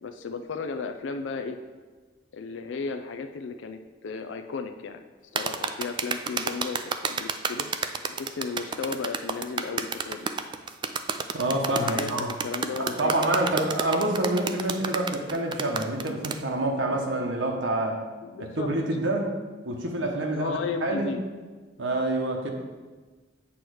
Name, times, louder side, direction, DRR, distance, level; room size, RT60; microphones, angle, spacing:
voice 1, 0.0-1.6 2.3-5.0 5.3-7.7 8.1-10.3 11.8-13.3 18.2-18.7 20.3-21.2, left 4 dB, 75° left, 7 dB, 0.4 m, -34 dB
sound 1, 5.4-16.4, right 5 dB, 25° right, 0.3 m, -30 dB
voice 2, 11.3-12.3 12.8-18.0 18.4-19.3 19.6-21.1 21.8-22.5, right 1 dB, 80° right, 1 dB, 1.1 m, -27 dB
8.6 x 3.1 x 6.3 m, 1.3 s
head